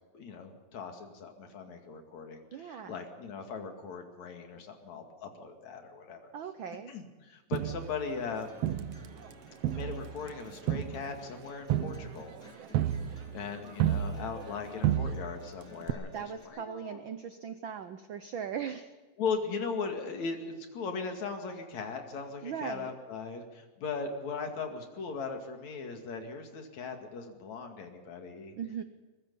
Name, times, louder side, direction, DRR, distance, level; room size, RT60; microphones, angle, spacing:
voice 1, 0.1-6.2 6.9-8.5 9.6-12.7 13.1-17.0 19.2-28.6, left 5 dB, 70° left, 4 dB, 3.5 m, -39 dB
voice 2, 2.5-3.0 6.3-6.9 16.1-18.9 22.4-22.9 28.6-28.8, right 8 dB, 85° right, 10 dB, 1.0 m, -39 dB
Crowd, 7.5-9.3 9.6-14.6 14.8-15.5 15.9-16.0, right 11 dB, 70° right, 1.6 m, -32 dB
sound 1, 8.5-16.4, left 2 dB, 30° left, 4.3 m, -57 dB
23.0 x 20.5 x 5.5 m, 1.3 s
omnidirectional pair, 3.4 m